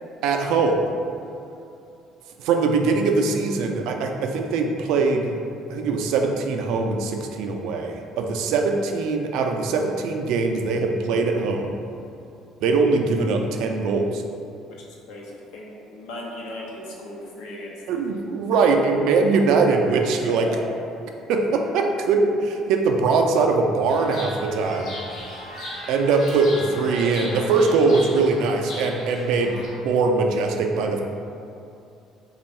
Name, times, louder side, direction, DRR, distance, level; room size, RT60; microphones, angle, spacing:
voice 1, 0.2-0.8 2.4-5.3 5.7-11.7 12.6-14.2 17.9-20.5 21.3-24.9 25.9-31.0, right 4 dB, 75° right, 3 dB, 0.3 m, -22 dB
voice 2, 15.1-17.7 20.3-20.7, left 1 dB, 85° left, -3 dB, 0.7 m, -36 dB
Chirp tweet, 23.9-29.7, left 1 dB, 50° left, 0.8 m, -37 dB
3.4 x 2.3 x 4.1 m, 2.6 s
cardioid pair, 160°, 0 cm